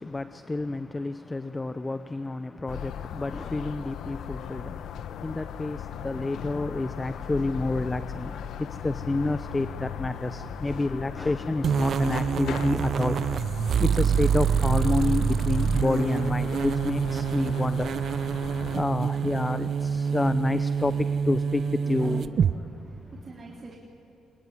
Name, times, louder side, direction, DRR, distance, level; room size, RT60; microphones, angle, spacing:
voice 1, 0.0-4.9 5.2-13.2 13.8-17.9 18.3-18.4 18.7-22.3, left 2 dB, 20° left, 12 dB, 0.7 m, -29 dB
sound 1, 2.7-18.8, left 8 dB, 75° left, 1.1 m, -38 dB
sound 2, 11.6-22.5, right 7 dB, 55° right, 0.6 m, -26 dB
voice 2, 21.8-22.3 22.7-23.8, right 4 dB, 40° right, -2 dB, 3.3 m, -44 dB
25.5 x 22.5 x 9.7 m, 2.7 s
cardioid pair, 90°, 0 cm